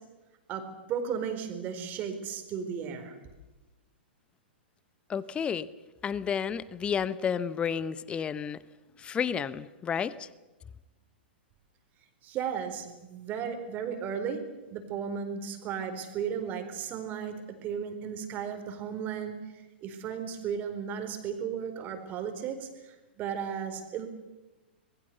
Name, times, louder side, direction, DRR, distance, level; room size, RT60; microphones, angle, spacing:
voice 1, 0.5-3.2 12.2-19.4 19.8-24.1, right 7 dB, 30° right, 4.4 m, -35 dB
voice 2, 5.1-5.7 6.0-8.6 9.0-10.3, left 7 dB, 20° left, 0.9 m, -31 dB
26.5 x 21.5 x 6.9 m
figure-of-eight pair, 105°, 6 cm